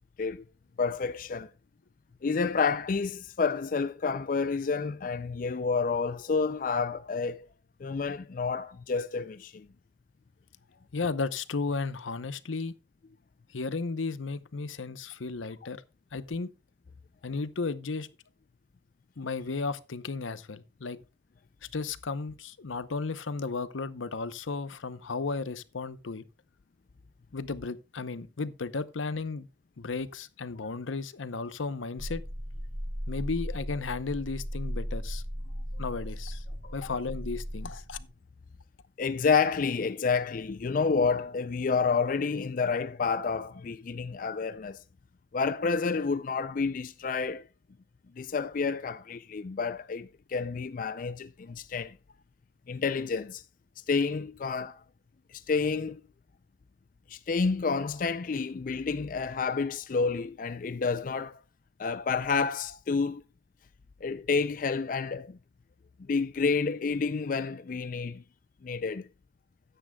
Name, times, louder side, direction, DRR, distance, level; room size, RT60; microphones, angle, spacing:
voice 1, 0.8-1.5 2.2-7.5 7.8-9.7 35.7-35.8 36.6-36.9 39.0-44.8 45.3-47.5 48.2-52.0 52.7-53.4 53.9-54.8 55.3-56.0 57.1-61.4 61.8-63.2 64.0-65.4 66.1-68.2 68.6-69.1, left 5 dB, 45° left, 0.4 m, -29 dB
voice 2, 10.9-12.7 13.5-15.8 16.1-16.5 17.2-18.1 19.2-21.0 21.7-26.2 27.3-29.5 29.8-32.2 33.1-35.2 35.8-36.4 36.7-38.0, left 4 dB, 85° left, 0.8 m, -34 dB
sound 1, 32.0-38.0, equal, 30° right, 2.7 m, -37 dB
13.5 x 10.0 x 2.3 m
head